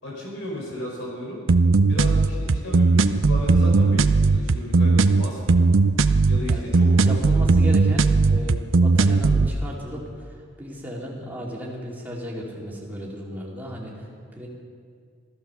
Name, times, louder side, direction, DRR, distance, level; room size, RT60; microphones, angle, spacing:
voice 1, 0.0-1.4 1.9-5.7 6.3-7.4, left 1 dB, 65° left, -3 dB, 4.6 m, -34 dB
sound 1, 1.5-9.5, right 3 dB, 70° right, 0.6 m, -18 dB
voice 2, 7.0-14.5, equal, 10° right, -4 dB, 2.6 m, -35 dB
14.5 x 14.0 x 6.9 m, 2.1 s
head